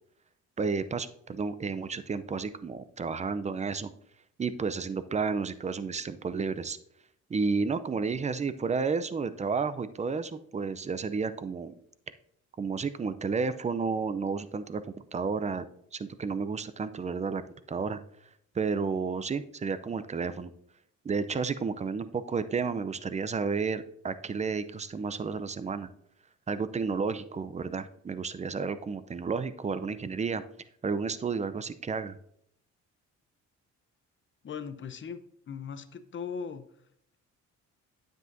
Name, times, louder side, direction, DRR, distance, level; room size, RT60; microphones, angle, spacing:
voice 1, 0.6-3.9 4.4-6.8 7.3-11.7 12.6-14.8 15.1-15.6 15.9-17.4 17.7-18.0 18.5-20.5 21.0-25.9 26.5-30.4 30.8-32.2, right 5 dB, 25° right, 13 dB, 0.5 m, -31 dB
voice 2, 34.4-35.2 35.5-36.6, left 6 dB, 40° left, 10 dB, 0.8 m, -38 dB
9.1 x 7.8 x 2.7 m, 0.70 s
cardioid pair, 90°, 30 cm